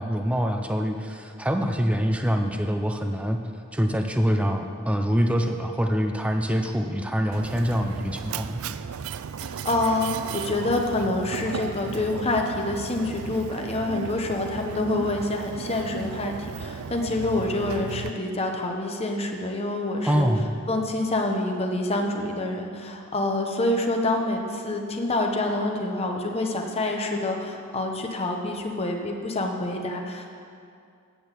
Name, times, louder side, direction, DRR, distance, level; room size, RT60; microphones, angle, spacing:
voice 1, 0.0-3.4 3.7-8.6 20.0-20.5, equal, 5° right, 4 dB, 0.5 m, -25 dB
Mechanisms, 7.3-18.1, right 6 dB, 75° right, 0.4 m, -35 dB
voice 2, 9.4-20.3 20.7-30.3, left 2 dB, 30° left, 2 dB, 1.0 m, -27 dB
8.8 x 6.2 x 8.2 m, 2.3 s
head